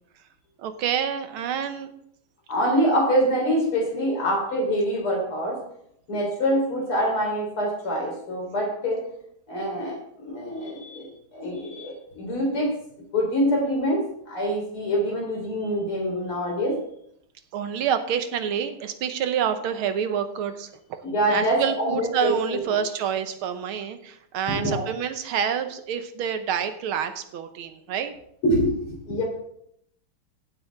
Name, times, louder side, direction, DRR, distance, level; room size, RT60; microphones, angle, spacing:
voice 1, 0.6-1.9 17.5-20.7 21.3-28.1, right 8 dB, 80° right, 9 dB, 1.8 m, -27 dB
voice 2, 2.5-5.6 6.1-9.0 9.5-11.1 11.3-12.7 13.1-16.8 21.0-22.7 24.5-24.9 28.4-29.2, equal, 85° left, 0 dB, 4.8 m, -25 dB
15.5 x 8.5 x 3.6 m, 0.71 s
omnidirectional pair, 2.3 m